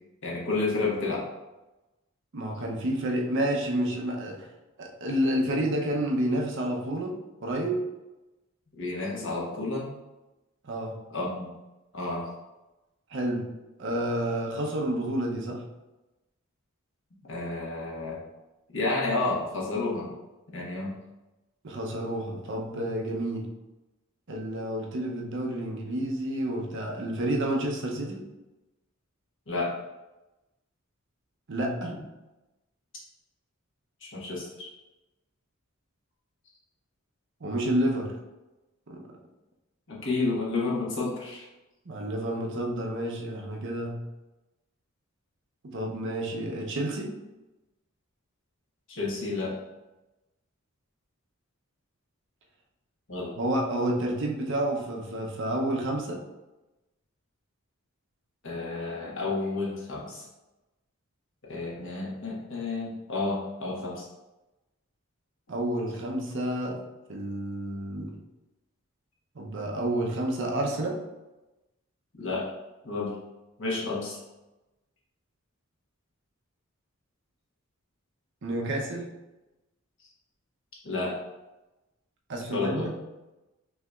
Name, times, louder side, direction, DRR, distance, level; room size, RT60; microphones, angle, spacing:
voice 1, 0.2-1.2 8.8-9.9 11.1-11.5 11.9-12.3 17.3-18.2 18.7-20.1 20.5-20.9 29.5-29.7 34.0-34.7 39.9-41.4 48.9-49.5 53.1-53.3 58.4-60.2 61.5-64.1 72.1-72.5 72.8-73.1 73.6-74.2 80.8-81.2 82.5-82.9, left 3 dB, 65° left, -4 dB, 1.2 m, -30 dB
voice 2, 2.3-4.5 4.8-7.8 10.6-10.9 13.1-13.5 13.8-15.6 21.6-23.5 24.3-28.2 31.5-31.9 37.4-38.1 38.9-39.0 41.9-44.0 45.6-47.1 53.4-56.2 65.5-66.8 67.1-68.1 69.3-71.0 78.4-79.1 82.3-82.9, right 1 dB, 60° right, 1 dB, 0.7 m, -29 dB
5.5 x 2.9 x 2.3 m, 1.0 s
head